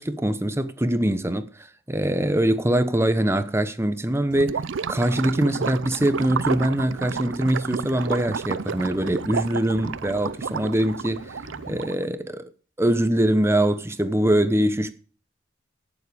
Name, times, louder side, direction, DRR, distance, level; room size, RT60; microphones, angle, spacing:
voice 1, 0.0-4.6 4.9-11.4 11.7-12.4 12.8-14.9, right 1 dB, 15° right, 0.9 m, -23 dB
Gurgling / Liquid, 4.3-12.0, right 6 dB, 85° right, 0.5 m, -31 dB
sound 1, 6.2-11.8, equal, 85° left, 4.0 m, -48 dB
16.5 x 7.3 x 5.1 m
head